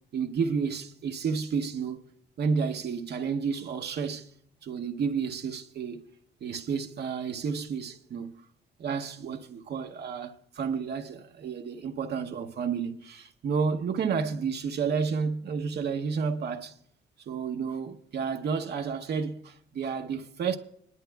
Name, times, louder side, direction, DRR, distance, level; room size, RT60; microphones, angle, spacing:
voice 1, 0.1-2.0 2.4-4.3 4.6-6.0 6.4-8.4 8.8-16.8 17.3-20.6, right 6 dB, 55° right, 0.8 m, -31 dB
20.0 x 11.0 x 2.3 m
cardioid pair, 90°, 20 cm